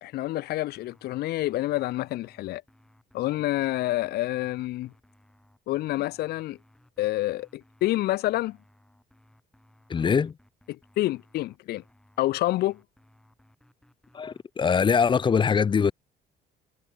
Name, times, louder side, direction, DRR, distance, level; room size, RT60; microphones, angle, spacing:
voice 1, 0.0-2.6 3.1-4.9 5.7-6.6 7.0-8.6 10.0-10.2 10.7-11.8 12.2-12.8, left 16 dB, 70° left, 0.7 m, -28 dB
sound 1, 0.7-14.5, left 1 dB, 5° left, 5.4 m, -61 dB
voice 2, 9.9-10.3 14.1-15.9, left 6 dB, 30° left, 0.6 m, -22 dB
cardioid pair, 110°, 17 cm